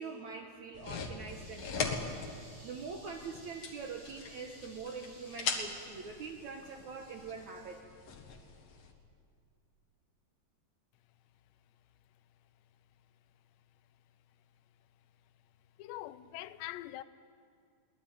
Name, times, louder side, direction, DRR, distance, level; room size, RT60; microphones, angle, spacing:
voice 1, 0.0-7.8, right 5 dB, 70° right, 1.8 m, -44 dB
sound 1, 0.7-8.9, left 5 dB, 55° left, 2.0 m, -41 dB
voice 2, 15.8-17.0, left 15 dB, 90° left, 2.9 m, -43 dB
22.0 x 19.0 x 9.4 m
omnidirectional pair, 4.9 m